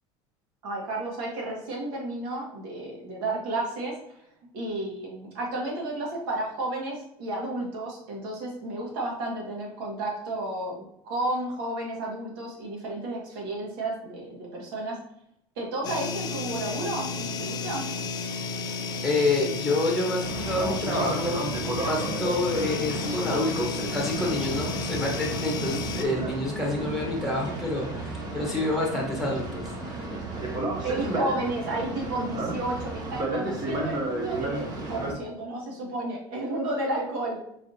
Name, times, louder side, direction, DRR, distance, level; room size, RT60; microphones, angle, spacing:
voice 1, 0.6-4.0 4.5-15.0 15.6-17.9 30.8-37.4, right 2 dB, 90° right, -2 dB, 1.8 m, -32 dB
sound 1, 15.8-26.1, left 4 dB, 35° left, 0.5 m, -33 dB
voice 2, 19.0-30.1, left 2 dB, 5° right, -2 dB, 1.2 m, -28 dB
Boat Water vehicle, 20.2-35.1, right 2 dB, 35° right, 0.9 m, -32 dB
5.0 x 3.5 x 2.7 m, 0.75 s
cardioid pair, 150°, 12 cm